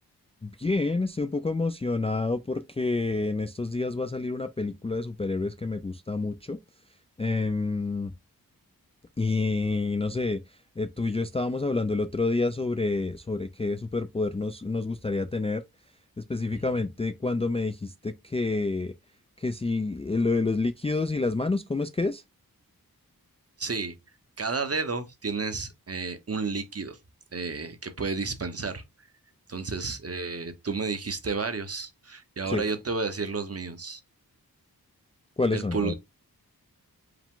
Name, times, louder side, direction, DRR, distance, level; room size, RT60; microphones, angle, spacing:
voice 1, 0.4-6.6 7.2-8.1 9.2-10.4 10.8-15.6 16.3-18.9 19.4-22.2 32.5-32.6 35.4-35.9, left 3 dB, 15° left, 0.3 m, -28 dB
voice 2, 23.6-23.9 24.4-27.0 27.3-28.8 29.5-34.0 35.5-35.9, right 4 dB, 40° right, 0.8 m, -31 dB
4.8 x 2.1 x 3.7 m
wide cardioid pair, 55°, 37 cm